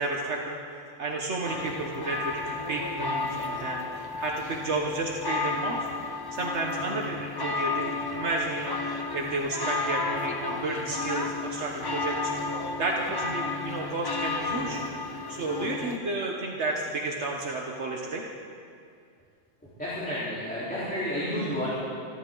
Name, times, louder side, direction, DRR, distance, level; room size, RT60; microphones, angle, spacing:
voice 1, 0.0-5.9 6.3-12.3 12.8-14.8 15.3-18.2, right 2 dB, 75° right, -1 dB, 1.4 m, -32 dB
sound 1, 1.4-16.0, left 3 dB, 25° left, 0.7 m, -32 dB
voice 2, 19.7-21.7, equal, 5° left, -12 dB, 3.9 m, -31 dB
26.0 x 11.5 x 3.9 m, 2.3 s
omnidirectional pair, 1.2 m